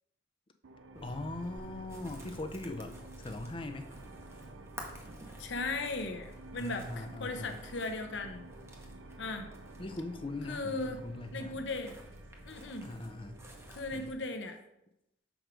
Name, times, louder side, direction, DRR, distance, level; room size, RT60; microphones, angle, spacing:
sound 1, 0.6-14.0, right 3 dB, 85° right, 0.6 m, -53 dB
sound 2, 0.9-14.1, right 1 dB, 15° right, 0.9 m, -50 dB
voice 1, 1.0-3.9 6.5-7.6 9.8-11.6 12.8-13.4 13.9-14.1, left 2 dB, 25° left, 7 dB, 0.6 m, -41 dB
voice 2, 5.4-8.4 9.2-9.5 10.5-11.0 11.3-12.0 12.5-12.9 13.7-14.6, left 3 dB, 65° left, 6 dB, 0.9 m, -37 dB
6.2 x 4.7 x 5.1 m, 0.84 s
head